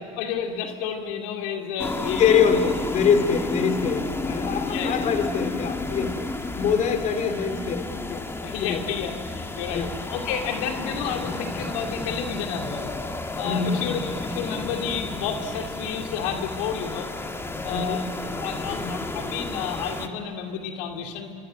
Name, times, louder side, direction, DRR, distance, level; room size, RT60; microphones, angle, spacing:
voice 1, 0.2-2.6 4.6-5.1 8.4-12.9 13.4-17.1 17.6-18.0 18.4-21.3, left 7 dB, 75° left, 4 dB, 2.5 m, -31 dB
sound 1, 1.8-20.1, left 2 dB, 15° left, 1.9 m, -32 dB
voice 2, 2.2-6.3 6.6-8.3 8.6-8.9 9.7-10.0 13.4-13.9 17.7-18.1 18.7-19.0, left 6 dB, 45° left, 7 dB, 2.6 m, -24 dB
26.5 x 24.5 x 7.6 m, 2.8 s
supercardioid pair, 95°, 17 cm